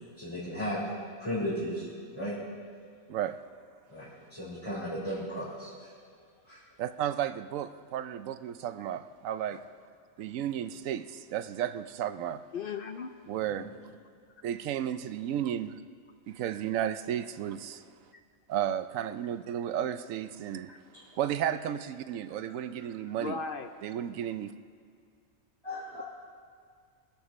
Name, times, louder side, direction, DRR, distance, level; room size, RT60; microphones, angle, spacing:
voice 1, 0.2-0.8 1.2-1.8 2.1-2.3 3.9-5.9 6.4-6.6 13.6-13.7 20.9-21.0 25.6-26.0, equal, 20° left, -12 dB, 4.2 m, -35 dB
voice 2, 6.8-9.6 10.2-12.4 13.3-13.7 14.4-15.8 16.3-17.8 18.5-20.7 21.2-23.4 23.8-24.5, right 10 dB, 80° right, 12 dB, 1.0 m, -33 dB
voice 3, 12.5-13.1 20.7-20.8 23.2-23.7, left 5 dB, 60° left, 7 dB, 0.6 m, -36 dB
24.5 x 10.5 x 3.1 m, 2.1 s
omnidirectional pair, 1.4 m